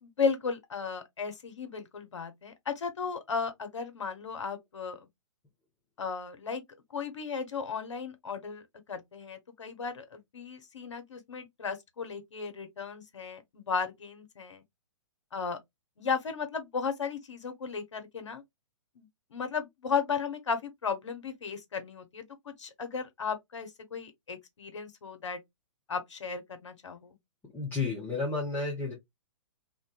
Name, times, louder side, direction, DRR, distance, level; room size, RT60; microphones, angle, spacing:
voice 1, 0.0-5.0 6.0-6.6 6.9-8.6 8.9-14.6 15.3-15.6 16.0-18.4 19.0-19.1 19.3-25.4 25.9-27.2, left 5 dB, 65° left, 0.7 m, -35 dB
voice 2, 27.5-28.9, left 3 dB, 10° left, 0.8 m, -31 dB
2.5 x 2.2 x 2.3 m
figure-of-eight pair, 120°, 16 cm